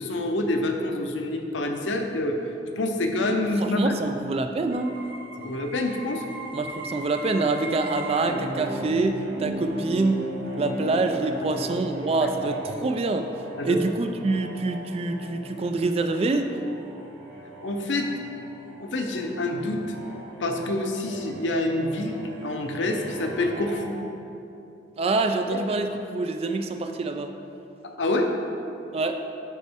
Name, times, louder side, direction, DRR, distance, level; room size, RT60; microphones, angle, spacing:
voice 1, 0.0-2.4 2.8-3.9 5.4-6.2 13.6-13.8 17.6-18.1 18.8-19.8 20.4-24.0 25.5-25.6 27.8-28.3, left 2 dB, 90° left, 3 dB, 0.7 m, -27 dB
voice 2, 3.6-4.9 6.5-10.2 10.6-13.2 13.6-16.5 25.0-27.3 28.9-29.1, right 3 dB, 35° right, 6 dB, 0.3 m, -26 dB
sound 1, 4.7-23.7, right 1 dB, 85° right, 1.3 m, -38 dB
8.1 x 5.2 x 3.5 m, 2.8 s
head